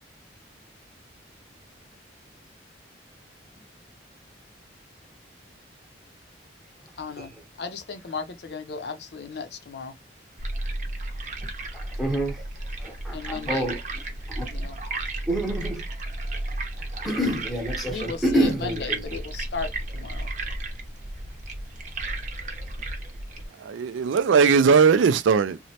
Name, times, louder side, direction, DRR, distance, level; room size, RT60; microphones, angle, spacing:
voice 1, 7.0-7.3 7.6-9.9 13.1-13.7 14.5-14.8 17.8-20.3, left 4 dB, 60° left, 0.5 m, -35 dB
sound 1, 10.4-23.5, right 2 dB, 40° right, 0.7 m, -33 dB
voice 2, 11.7-12.4 12.8-13.8 14.3-14.4 15.3-15.8 17.0-19.1, right 1 dB, ahead, 0.8 m, -27 dB
voice 3, 23.5-25.6, right 5 dB, 90° right, 0.4 m, -19 dB
3.0 x 2.1 x 2.8 m
head